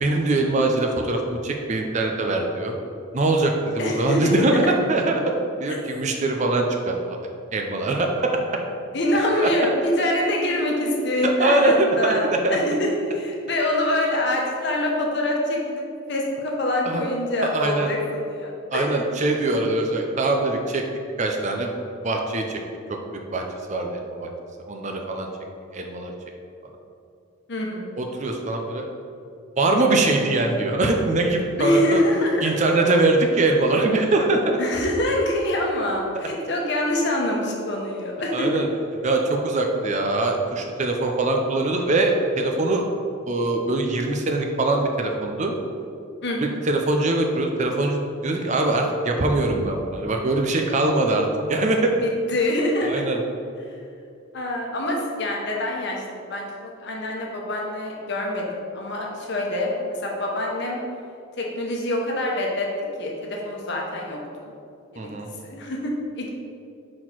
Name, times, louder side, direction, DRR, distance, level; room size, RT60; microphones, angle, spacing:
voice 1, 0.0-2.7 3.1-4.6 4.9-7.0 7.5-8.1 9.4-9.5 11.4-12.6 16.8-17.0 17.4-17.9 18.7-20.8 21.2-21.7 22.0-22.6 22.9-23.0 23.3-23.4 23.7-24.3 24.7-25.3 25.7-26.1 28.0-28.9 29.6-32.0 32.4-34.6 38.3-38.7 39.0-42.8 43.3-45.5 46.7-51.9 52.8-53.2 65.0-65.3, right 2 dB, 35° right, 2 dB, 0.5 m, -22 dB
voice 2, 3.8-4.6 8.9-19.0 27.5-27.9 31.6-32.5 34.6-38.6 46.2-46.5 52.0-53.1 54.3-56.0 56.3-60.8 61.4-62.7 63.0-64.5 65.0-65.2 65.4-66.3, left 1 dB, 55° left, -1 dB, 1.0 m, -25 dB
6.0 x 4.2 x 4.5 m, 2.5 s
head